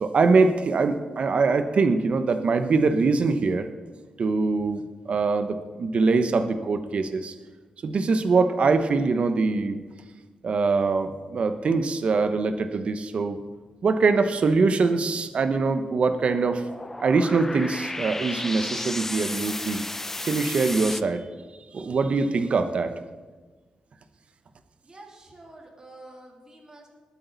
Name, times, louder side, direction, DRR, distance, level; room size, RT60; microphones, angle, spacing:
voice 1, 0.0-3.7 4.2-7.3 7.8-9.8 10.4-13.4 13.8-16.6 17.0-19.8 20.2-21.2 21.7-22.9, right 4 dB, 55° right, 9 dB, 1.0 m, -23 dB
sound 1, 13.4-13.5 13.7-13.9 15.0-15.1 15.3-21.0, left 2 dB, 15° left, 0.5 m, -34 dB
voice 2, 24.8-26.9, right 2 dB, 30° right, -1 dB, 3.1 m, -48 dB
20.5 x 8.5 x 4.0 m, 1.3 s
cardioid pair, 105°, 2 cm